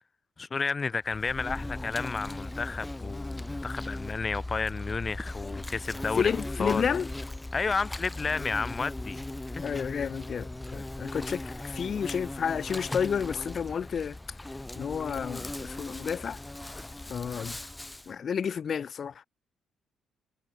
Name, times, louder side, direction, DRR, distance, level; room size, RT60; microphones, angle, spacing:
voice 1, 0.4-6.3 6.6-6.8 7.5-9.2 9.6-9.7, left 4 dB, 35° left, 2.2 m, -31 dB
Insect, 1.1-18.1, left 1 dB, 10° left, 6.6 m, -38 dB
voice 2, 6.1-7.1 9.6-14.2 14.7-16.4 17.1-17.6 18.1-19.1, left 7 dB, 50° left, 1.4 m, -31 dB
cardioid pair, 90°, 0 cm